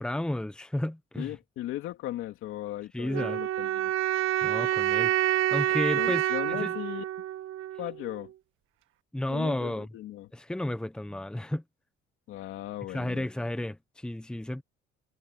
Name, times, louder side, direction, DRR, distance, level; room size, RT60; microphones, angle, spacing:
voice 1, 0.0-1.3 2.9-3.4 4.4-5.1 5.5-6.7 9.1-9.9 10.3-11.6 12.9-14.6, left 1 dB, 5° left, 1.0 m, -32 dB
voice 2, 1.2-3.9 5.9-7.0 7.8-8.3 9.3-10.3 12.3-13.3, left 14 dB, 75° left, 3.1 m, -37 dB
sound 1, 3.1-8.1, right 13 dB, 75° right, 1.8 m, -28 dB
cardioid pair, 120°, 21 cm